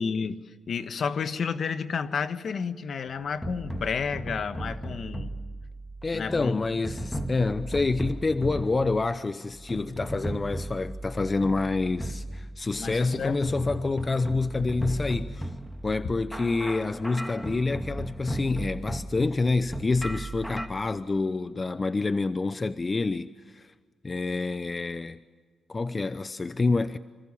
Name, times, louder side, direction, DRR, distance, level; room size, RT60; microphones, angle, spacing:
voice 1, 0.0-5.3 6.1-6.5 12.8-13.4 16.0-16.1, left 6 dB, 55° left, 1.5 m, -31 dB
sound 1, 3.2-20.7, right 1 dB, 5° left, 2.5 m, -36 dB
voice 2, 6.0-15.5 15.8-23.7 24.0-25.2 25.7-27.0, left 3 dB, 30° left, 0.8 m, -27 dB
26.5 x 26.0 x 7.1 m
cardioid pair, 80°, 0 cm